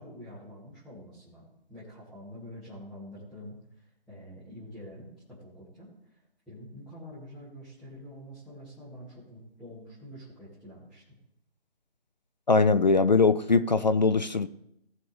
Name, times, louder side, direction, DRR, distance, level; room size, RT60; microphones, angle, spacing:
voice 1, 0.0-6.2 6.5-11.2, equal, ahead, -14 dB, 2.2 m, -46 dB
voice 2, 12.5-14.5, left 4 dB, 45° left, 13 dB, 0.5 m, -21 dB
18.0 x 6.6 x 3.4 m, 0.77 s
figure-of-eight pair, 155°, 32 cm